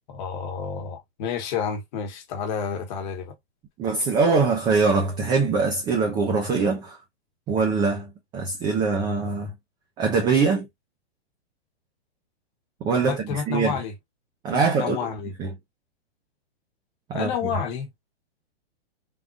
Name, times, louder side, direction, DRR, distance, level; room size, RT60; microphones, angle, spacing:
voice 1, 0.1-3.3 13.0-13.9 14.5-15.3 17.1-17.9, left 7 dB, 45° left, 1.2 m, -30 dB
voice 2, 3.8-7.0 7.5-9.5 10.0-10.7 12.8-13.7 14.4-15.0 15.4-15.5 17.1-17.3, right 4 dB, 15° right, 0.4 m, -23 dB
3.6 x 2.4 x 2.4 m
hypercardioid pair, 150°, 33 cm